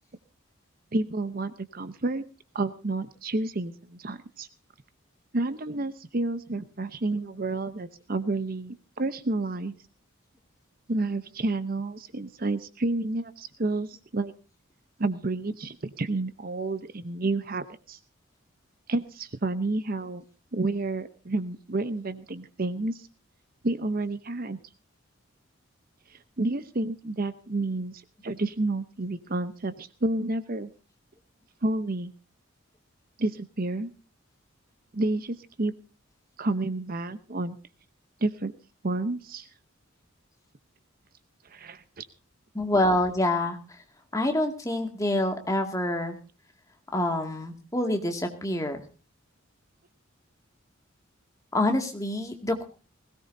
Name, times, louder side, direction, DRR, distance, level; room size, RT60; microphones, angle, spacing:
voice 1, 0.9-2.2 2.5-4.5 5.3-9.7 10.9-14.3 15.0-18.0 18.9-20.2 20.5-23.1 23.6-24.6 26.1-30.7 31.6-32.1 33.2-33.9 34.9-35.7 36.4-37.6 38.2-38.5 38.8-39.5 41.4-42.1, right 2 dB, 45° right, 12 dB, 0.8 m, -30 dB
voice 2, 42.5-43.8 44.1-46.2 46.9-48.8 51.5-52.6, left 1 dB, 15° left, 4 dB, 2.2 m, -26 dB
20.5 x 17.5 x 2.7 m, 0.34 s
head